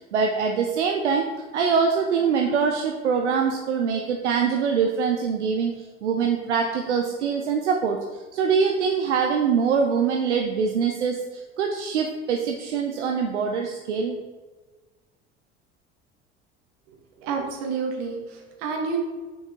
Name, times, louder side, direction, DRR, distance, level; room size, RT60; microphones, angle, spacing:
voice 1, 0.0-14.2, right 6 dB, 85° right, 3 dB, 0.6 m, -24 dB
voice 2, 17.2-19.0, right 5 dB, 65° right, 2 dB, 1.5 m, -29 dB
6.0 x 5.3 x 3.6 m, 1.3 s
hypercardioid pair, 65°, 34 cm